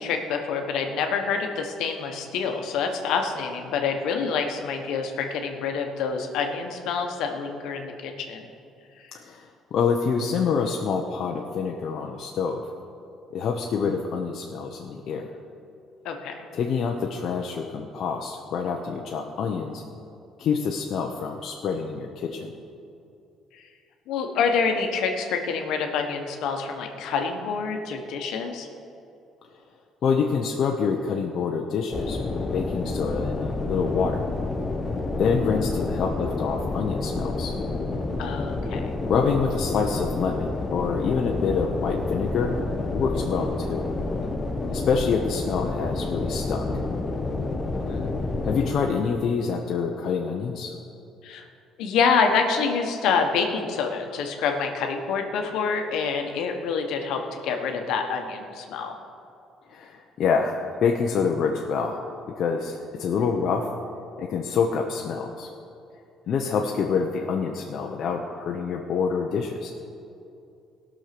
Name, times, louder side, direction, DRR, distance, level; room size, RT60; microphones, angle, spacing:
voice 1, 0.0-8.5 16.0-16.4 23.5-23.7 24.1-28.7 38.2-38.9 47.7-48.1 51.2-51.4 51.8-58.9, left 5 dB, 75° left, 4 dB, 1.2 m, -27 dB
voice 2, 9.1-12.7 13.3-15.3 16.5-19.8 20.4-22.5 30.0-34.3 35.2-37.6 39.1-42.6 42.9-43.9 44.7-46.7 48.4-50.8 59.7-62.0 62.3-63.7 64.2-65.5 66.3-69.7, left 5 dB, 60° left, 1 dB, 0.8 m, -26 dB
sound 1, 31.9-48.8, left 3 dB, 30° left, 1.1 m, -29 dB
17.0 x 6.3 x 6.0 m, 2.6 s
supercardioid pair, 80°, 0 cm